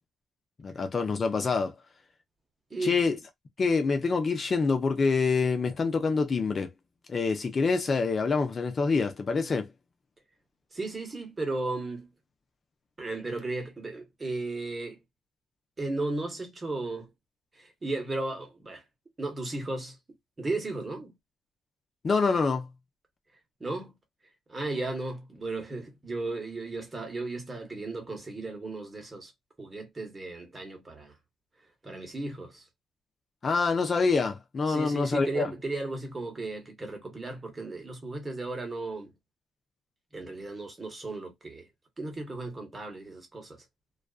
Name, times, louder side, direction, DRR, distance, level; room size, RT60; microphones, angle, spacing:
voice 1, 0.6-1.7 2.8-3.2 3.6-6.7 7.1-9.7 22.0-22.7 33.4-35.5, left 4 dB, 40° left, 0.5 m, -26 dB
voice 2, 10.7-12.1 13.0-15.0 15.8-17.1 17.6-18.8 19.2-20.0 20.4-21.1 23.6-23.9 24.5-29.3 29.6-31.1 31.8-32.6 34.7-39.1 40.1-41.7 42.0-43.6, right 2 dB, 25° right, 1.1 m, -35 dB
2.4 x 2.3 x 2.3 m
cardioid pair, 90°, 0 cm